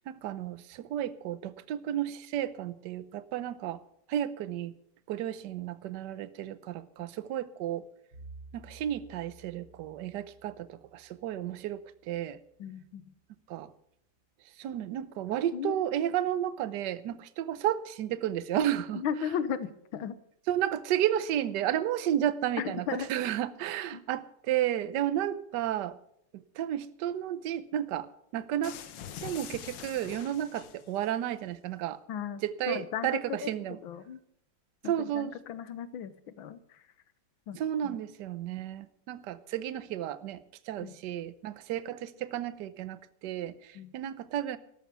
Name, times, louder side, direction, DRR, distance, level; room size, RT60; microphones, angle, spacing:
voice 1, 0.0-3.8 4.1-4.7 5.1-7.9 8.5-12.4 13.5-13.7 14.6-19.0 20.5-26.0 26.3-28.8 29.2-32.0 32.4-33.8 34.8-35.3 37.6-44.6, right 11 dB, 70° right, 15 dB, 1.3 m, -32 dB
Bowed string instrument, 8.1-12.3, right 2 dB, 85° right, 5.9 m, -53 dB
voice 2, 12.6-13.1 15.5-15.8 18.9-20.2 22.6-23.1 23.9-24.0 32.1-34.2 34.8-36.8 37.5-38.0 40.8-41.0 43.8-43.9, left 8 dB, 90° left, 14 dB, 1.7 m, -36 dB
sound 1, 28.6-31.1, left 9 dB, 70° left, 1.6 m, -44 dB
13.5 x 11.0 x 6.9 m, 0.71 s
omnidirectional pair, 2.1 m